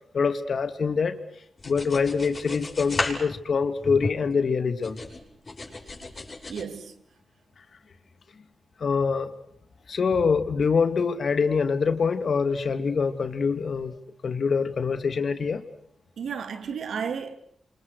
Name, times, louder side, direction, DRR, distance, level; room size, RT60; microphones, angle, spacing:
voice 1, 0.1-1.2 1.6-5.0 8.8-9.3 9.9-14.0 14.2-15.7, left 5 dB, 65° left, 2.5 m, -25 dB
sound 1, 1.6-4.4 4.8-6.6, left 3 dB, 40° left, 7.6 m, -34 dB
voice 2, 6.5-7.0 16.2-17.4, right 6 dB, 85° right, 2.7 m, -33 dB
29.5 x 26.5 x 6.4 m
cardioid pair, 60°, 0 cm